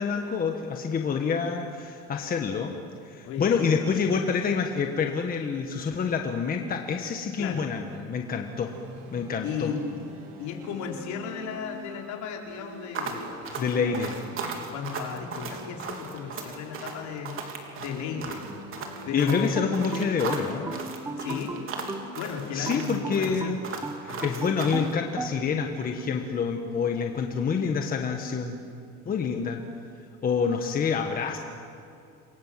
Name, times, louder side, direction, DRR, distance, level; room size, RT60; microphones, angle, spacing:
voice 1, 0.0-2.7 3.0-8.7 9.1-9.7 13.6-14.1 19.1-20.7 22.5-23.6 24.0-28.6 29.0-29.6 30.2-31.4, left 6 dB, 25° left, 3 dB, 1.5 m, -27 dB
voice 2, 3.2-3.7 4.1-4.3 7.4-7.7 9.4-9.9 10.4-14.2 14.6-17.5 17.8-18.4 19.0-19.7 21.2-21.6 22.1-23.7 24.1-24.3, left 6 dB, 60° left, 1 dB, 4.3 m, -35 dB
sound 1, 8.6-22.7, equal, 90° right, 7.1 m, -46 dB
sound 2, 12.9-24.9, right 5 dB, 40° right, 3.4 m, -37 dB
sound 3, 19.5-22.1 22.7-25.4, right 3 dB, 10° right, 0.9 m, -36 dB
28.5 x 23.5 x 7.6 m, 2.5 s
cardioid pair, 160°, 33 cm